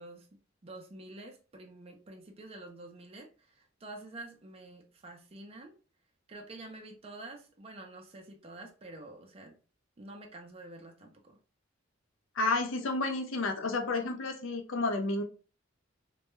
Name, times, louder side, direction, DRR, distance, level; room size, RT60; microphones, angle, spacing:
voice 1, 0.0-5.7 6.3-9.6 10.0-11.4, right 2 dB, 30° right, 2 dB, 0.5 m, -48 dB
voice 2, 12.4-15.2, left 3 dB, 75° left, 4 dB, 0.5 m, -31 dB
2.2 x 2.1 x 3.0 m, 0.36 s
head